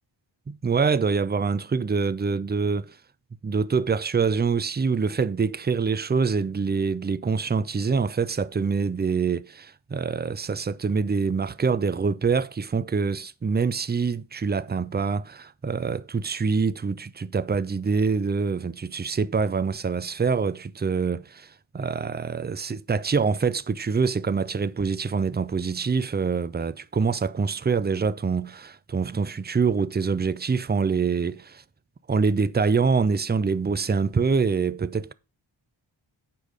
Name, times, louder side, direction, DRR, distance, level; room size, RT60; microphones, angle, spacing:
voice 1, 0.5-3.0 3.4-31.6 32.1-35.1, right 5 dB, 20° right, 0.4 m, -25 dB
8.4 x 4.9 x 5.1 m
wide cardioid pair, 70°, 49 cm